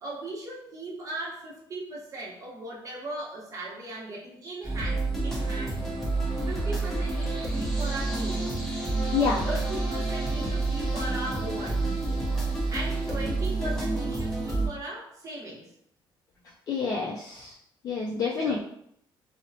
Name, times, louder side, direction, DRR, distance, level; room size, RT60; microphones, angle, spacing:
voice 1, 0.0-5.8 6.5-8.6 9.4-12.0 12.7-15.7 18.4-18.6, right 2 dB, 35° right, -4 dB, 0.8 m, -38 dB
sound 1, 4.6-14.7, right 2 dB, 5° left, 0.7 m, -29 dB
voice 2, 9.0-9.5 16.7-17.5 17.8-18.6, left 5 dB, 45° left, -3 dB, 0.3 m, -28 dB
2.9 x 2.0 x 2.6 m, 0.72 s
cardioid pair, 120°, 9 cm